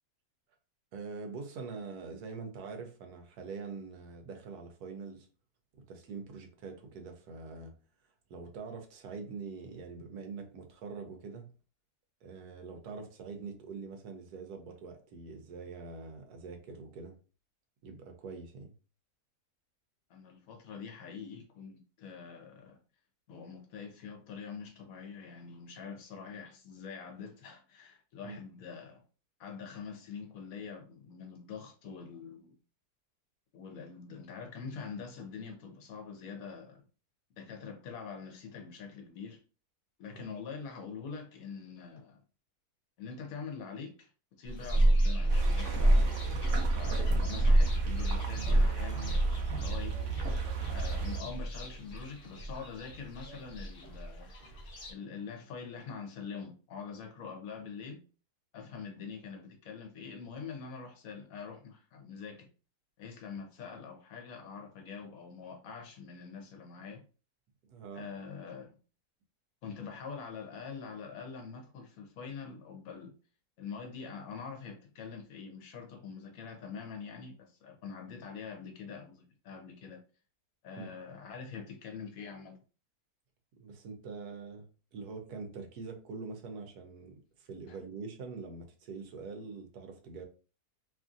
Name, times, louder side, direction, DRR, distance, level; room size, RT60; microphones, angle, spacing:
voice 1, 0.9-5.3 5.7-7.7 8.3-11.5 12.2-17.1 17.8-18.7 28.2-28.4 40.1-40.2 67.7-68.1 80.8-80.9 83.5-84.7 84.9-90.2, right 4 dB, 90° right, 1.2 m, -44 dB
voice 2, 20.1-22.8 23.3-29.0 29.4-32.6 33.5-36.8 37.4-39.4 40.0-42.2 43.0-46.1 46.7-50.0 50.7-54.3 54.9-58.0 58.5-62.5 63.0-67.0 67.9-68.8 69.6-73.1 73.6-80.0 80.6-82.6 87.7-87.8, left 6 dB, 70° left, 1.1 m, -44 dB
sound 1, 44.5-54.9, right 1 dB, 45° left, 0.9 m, -29 dB
sound 2, 45.3-51.2, right 6 dB, 65° right, 0.8 m, -35 dB
3.0 x 2.5 x 2.4 m
omnidirectional pair, 1.6 m